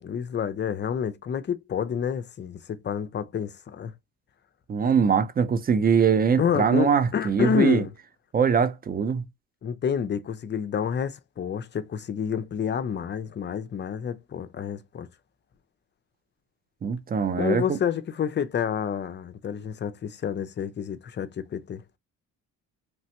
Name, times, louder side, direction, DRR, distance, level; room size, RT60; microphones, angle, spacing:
voice 1, 0.0-3.9 6.4-7.9 9.6-15.1 17.4-21.8, left 7 dB, 35° left, 0.5 m, -29 dB
voice 2, 4.7-7.8 8.3-9.2 16.8-17.6, right 6 dB, 30° right, 0.4 m, -22 dB
3.2 x 2.1 x 2.8 m
cardioid pair, 90°, 33 cm